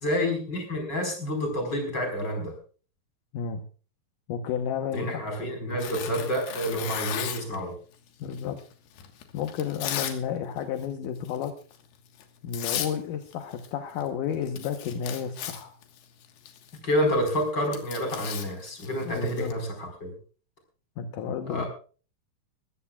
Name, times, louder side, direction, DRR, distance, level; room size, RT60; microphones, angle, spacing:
voice 1, 0.0-2.5 4.9-7.7 16.8-20.1 21.5-21.7, equal, 25° left, 3 dB, 5.2 m, -28 dB
voice 2, 4.3-5.2 8.2-8.6 9.3-11.5 12.4-15.7 19.0-19.6 21.0-21.7, left 8 dB, 65° left, 6 dB, 2.3 m, -31 dB
Tearing, 5.8-7.6 8.3-10.2 10.5-10.9 11.3-11.5 12.2-12.3 12.5-12.9 13.2-13.7 14.0-14.1 14.3-19.5, left 10 dB, 85° left, 3.4 m, -36 dB
22.5 x 14.5 x 2.4 m, 0.38 s
omnidirectional pair, 4.6 m